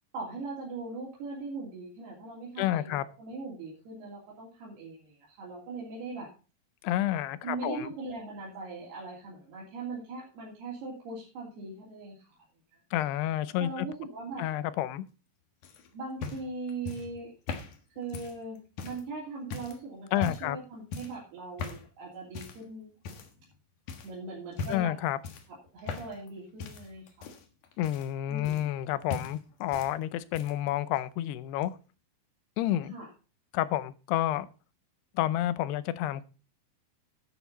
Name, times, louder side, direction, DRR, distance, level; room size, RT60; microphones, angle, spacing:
voice 1, 0.1-6.3 7.4-12.4 12.7-12.8 13.6-14.5 15.9-17.3 18.0-22.9 24.0-25.0 25.7-27.3 28.3-28.7 32.9-33.1, right 3 dB, 75° right, 5.1 m, -40 dB
voice 2, 2.6-3.0 6.8-7.9 12.9-13.9 14.4-15.1 20.1-20.6 24.7-25.2 27.8-31.8 32.6-32.9 33.5-34.5 35.2-36.2, left 13 dB, 90° left, 2.8 m, -30 dB
sound 1, 15.6-19.1 19.5-19.8 20.2-20.6 20.9-21.2 21.6-21.9 22.3-22.6 23.0-23.5 23.9-24.1 24.5-24.9 25.2-26.3 26.6-28.8 29.1-29.9 30.2-30.7 31.6-31.7, left 5 dB, 60° left, 2.7 m, -39 dB
11.5 x 9.2 x 4.1 m
omnidirectional pair, 4.6 m